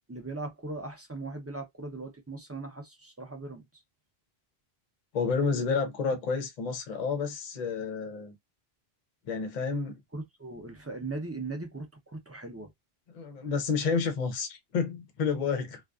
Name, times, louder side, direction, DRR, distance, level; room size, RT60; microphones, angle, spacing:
voice 1, 0.1-3.6 10.1-12.7, right 3 dB, 20° right, 0.4 m, -39 dB
voice 2, 5.1-8.3 9.3-10.0 13.1-15.8, left 5 dB, 50° left, 0.6 m, -30 dB
2.5 x 2.3 x 2.3 m
omnidirectional pair, 1.1 m